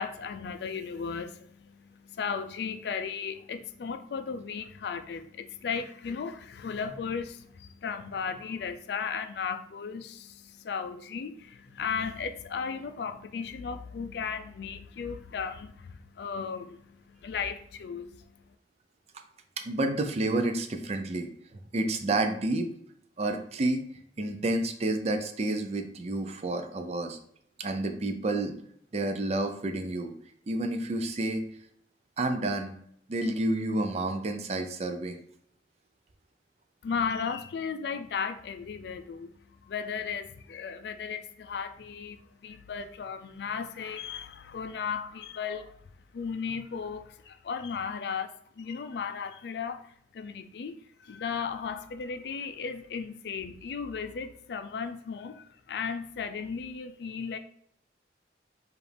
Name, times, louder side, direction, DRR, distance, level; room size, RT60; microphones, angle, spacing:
voice 1, 0.0-18.2 36.8-39.3 39.6-45.7 46.1-50.7 51.0-57.4, left 6 dB, 65° left, 0.4 m, -35 dB
voice 2, 19.6-21.3 21.7-22.7 23.2-23.8 24.2-27.2 27.6-28.5 28.9-30.1 30.5-31.5 32.2-32.7 33.1-35.2, right 2 dB, 35° right, 0.4 m, -29 dB
4.9 x 2.5 x 3.3 m
head